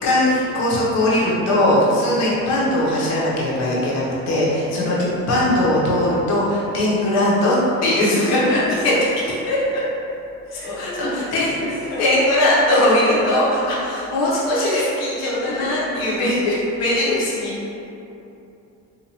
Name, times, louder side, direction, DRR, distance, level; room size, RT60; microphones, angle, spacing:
voice 1, 0.0-7.5 7.8-8.6 8.8-8.9 9.5-9.8 10.5-11.5 12.0-17.5, left 1 dB, 60° left, -6 dB, 1.1 m, -20 dB
voice 2, 2.0-2.5 4.7-5.3 6.8-7.3 8.2-8.8 10.4-12.1 12.7-13.4 15.4-15.9, left 2 dB, 45° left, -7 dB, 0.5 m, -32 dB
3.8 x 2.8 x 3.0 m, 2.8 s
cardioid pair, 145°, 29 cm